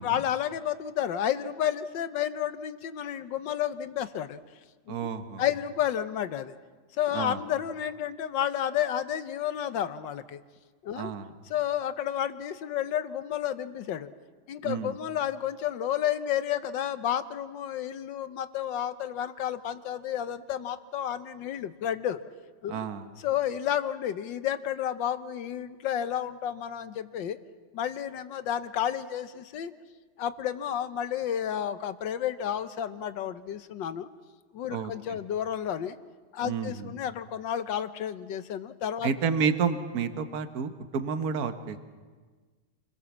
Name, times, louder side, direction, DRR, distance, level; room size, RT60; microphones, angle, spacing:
voice 1, 0.0-4.4 4.9-5.0 5.4-6.6 7.0-10.4 10.8-11.1 11.5-14.1 14.5-22.2 22.6-22.9 23.2-27.4 27.7-29.7 30.2-34.1 34.5-36.0 36.3-39.1, left 10 dB, 85° left, 12 dB, 1.6 m, -31 dB
voice 2, 4.9-5.4 7.1-7.4 10.9-11.3 14.6-14.9 22.7-23.1 34.7-34.9 36.4-36.9 39.0-41.8, right 6 dB, 55° right, 9 dB, 1.6 m, -30 dB
29.0 x 21.0 x 7.3 m, 1.4 s
omnidirectional pair, 1.9 m